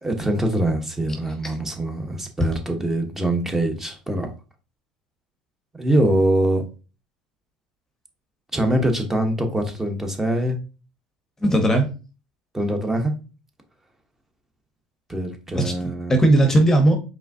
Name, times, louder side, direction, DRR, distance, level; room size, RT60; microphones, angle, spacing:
voice 1, 0.0-4.3 5.7-6.6 8.5-10.6 12.5-13.1 15.1-16.2, right 1 dB, 10° right, 4 dB, 1.1 m, -23 dB
voice 2, 11.4-11.9 15.5-16.9, right 1 dB, 15° left, 5 dB, 0.9 m, -18 dB
4.8 x 3.3 x 2.7 m, 0.33 s
supercardioid pair, 95°, 3 cm